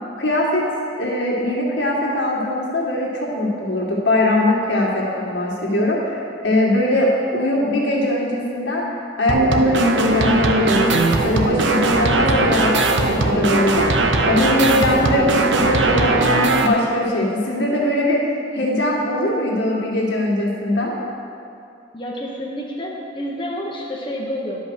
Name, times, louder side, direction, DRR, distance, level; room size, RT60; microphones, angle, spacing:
voice 1, 0.2-0.6 1.0-8.9 9.2-13.9 14.3-20.9, left 1 dB, 75° left, -3 dB, 2.0 m, -21 dB
sound 1, 9.3-16.7, right 2 dB, 80° right, 0.8 m, -18 dB
voice 2, 21.9-24.6, equal, 25° left, -4 dB, 1.0 m, -29 dB
11.0 x 5.6 x 6.3 m, 2.5 s
head